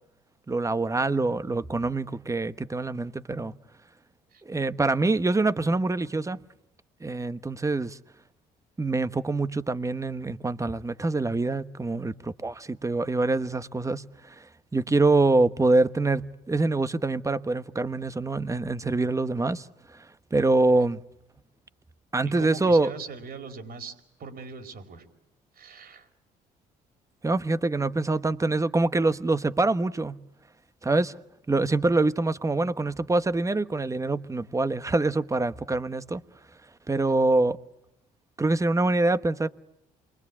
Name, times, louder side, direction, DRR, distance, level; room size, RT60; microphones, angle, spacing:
voice 1, 0.5-3.5 4.4-6.4 7.0-8.0 8.8-19.7 19.9-20.1 20.3-21.0 22.1-22.9 27.2-30.2 30.8-31.2 31.5-36.2 36.9-37.6 38.4-39.5, right 2 dB, 20° right, 1.2 m, -25 dB
voice 2, 22.2-23.9 24.2-25.0 25.5-26.1, right 5 dB, 60° right, 4.7 m, -40 dB
28.0 x 23.5 x 8.6 m
supercardioid pair, 75°, 17 cm